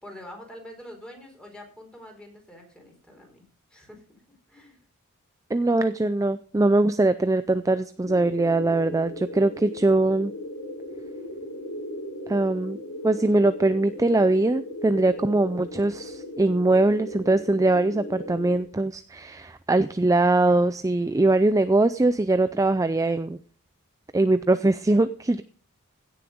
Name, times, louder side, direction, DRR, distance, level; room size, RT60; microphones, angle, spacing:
voice 1, 0.0-4.8, left 1 dB, 5° left, 2 dB, 4.2 m, -46 dB
voice 2, 5.5-10.3 12.3-12.8 13.0-23.4 24.1-25.4, right 2 dB, 15° right, 12 dB, 0.4 m, -22 dB
sound 1, 8.0-18.6, left 1 dB, 65° left, 4.1 m, -37 dB
16.5 x 7.2 x 5.1 m, 0.42 s
head